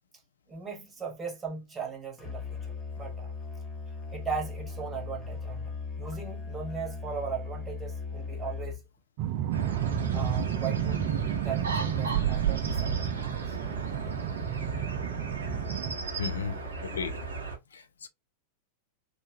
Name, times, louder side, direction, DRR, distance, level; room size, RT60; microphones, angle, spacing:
voice 1, 0.5-3.3 4.1-8.8 10.1-11.1 11.4-13.1, right 5 dB, 15° right, 1.2 m, -38 dB
Musical instrument, 2.2-9.0, left 4 dB, 20° left, 1.0 m, -38 dB
sound 1, 9.2-16.0, right 10 dB, 50° right, 0.4 m, -31 dB
sound 2, 9.5-17.6, right 3 dB, 70° right, 0.7 m, -35 dB
voice 2, 16.2-17.1 17.7-18.1, left 6 dB, 70° left, 0.4 m, -35 dB
2.8 x 2.3 x 2.7 m
figure-of-eight pair, 90°, 0 cm